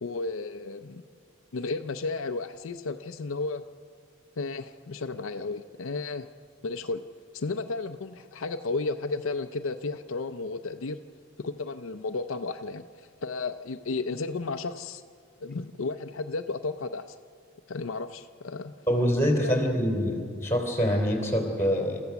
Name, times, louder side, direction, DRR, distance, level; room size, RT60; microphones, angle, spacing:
voice 1, 0.0-1.0 1.5-3.6 4.4-6.3 6.6-7.0 7.3-11.0 11.4-15.0 15.4-17.2 17.7-18.7 19.4-19.7, left 3 dB, 75° left, 8 dB, 0.6 m, -33 dB
voice 2, 18.9-22.0, equal, 10° left, 2 dB, 3.4 m, -25 dB
28.5 x 14.5 x 7.1 m, 2.3 s
head